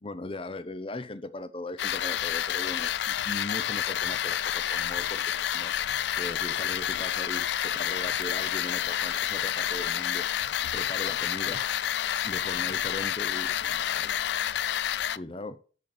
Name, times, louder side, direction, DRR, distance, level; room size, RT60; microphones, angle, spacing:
voice 1, 0.0-5.7 6.2-10.3 10.7-11.7 12.0-14.7 15.2-15.6, left 2 dB, 30° left, 0.6 m, -39 dB
sound 1, 1.8-15.2, left 10 dB, 65° left, 0.3 m, -29 dB
6.9 x 6.5 x 6.7 m
head